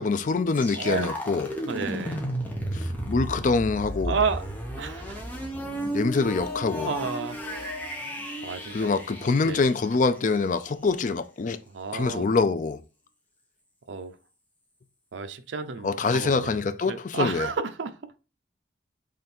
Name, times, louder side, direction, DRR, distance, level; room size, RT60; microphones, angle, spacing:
voice 1, 0.0-1.5 2.7-4.2 5.9-6.9 8.7-11.6 11.9-12.8 15.8-17.5, left 4 dB, 40° left, 0.4 m, -25 dB
sound 1, 0.5-10.4, equal, 10° left, 0.9 m, -33 dB
voice 2, 0.7-1.1 1.7-2.2 4.1-4.4 4.8-5.2 6.8-7.4 8.4-8.9 9.4-9.6 11.7-12.3 13.9-14.1 15.1-17.9, right 5 dB, 80° right, 0.5 m, -31 dB
3.8 x 3.3 x 4.2 m
head